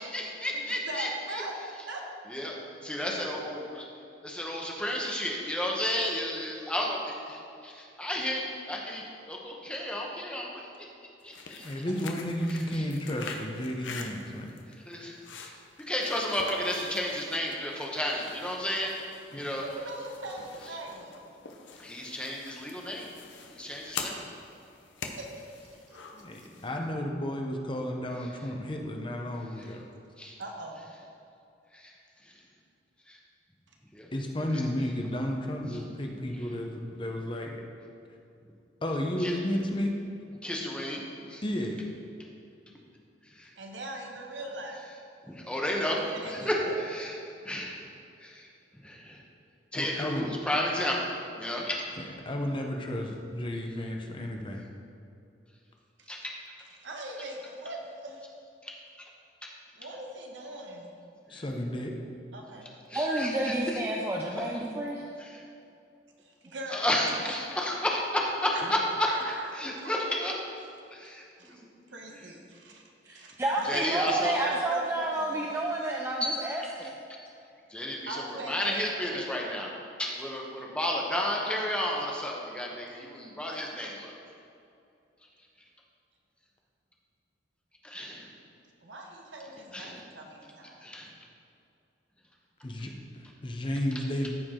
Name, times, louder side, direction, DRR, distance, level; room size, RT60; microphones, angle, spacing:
voice 1, 0.0-1.4 2.3-2.6 2.8-3.8 4.2-10.5 10.8-10.9 11.2-11.3 11.7-11.8 12.5-12.8 14.7-15.6 15.9-18.9 19.3-19.6 21.8-23.1 23.5-24.2 29.6-29.7 30.2-30.4 31.7-31.9 32.2-32.3 33.1-33.2 33.9-34.1 35.7-35.8 39.2-39.3 40.4-41.4 42.2-42.3 43.3-43.5 45.3-47.1 47.4-47.8 48.2-48.5 48.8-49.2 49.7-51.1 51.4-51.8 56.1-56.3 58.6-58.7 59.4-59.5 61.3-61.4 62.9-63.6 65.2-65.4 66.7-68.8 69.5-70.3 70.9-71.6 73.6-74.3 76.2-76.3 77.7-79.7 80.0-84.1 87.8-88.3 89.7-90.0 90.8-91.1, left 1 dB, 5° left, -2 dB, 1.0 m, -32 dB
voice 2, 0.9-1.5 1.9-2.0 11.6-11.8 19.6-21.1 25.2-26.0 26.6-26.7 30.4-30.8 43.6-44.9 45.9-46.8 56.0-56.1 56.8-58.2 59.8-60.9 62.3-62.7 66.2-66.8 67.2-67.8 68.5-68.7 69.0-70.3 71.0-71.1 71.4-71.6 71.9-74.4 74.7-75.5 78.1-79.3 88.8-90.9, right 1 dB, 85° right, 1 dB, 1.2 m, -41 dB
sound 1, 11.2-26.8, left 5 dB, 85° left, 0.8 m, -45 dB
voice 3, 11.6-14.5 19.3-19.5 26.1-29.8 34.1-37.6 38.8-39.9 41.4-41.8 49.7-50.3 52.0-54.6 61.3-61.9 92.6-94.3, left 1 dB, 25° left, 2 dB, 0.7 m, -32 dB
voice 4, 62.9-65.0 73.0-76.9, right 2 dB, 15° right, -2 dB, 0.5 m, -30 dB
14.0 x 4.7 x 3.7 m, 2.6 s
head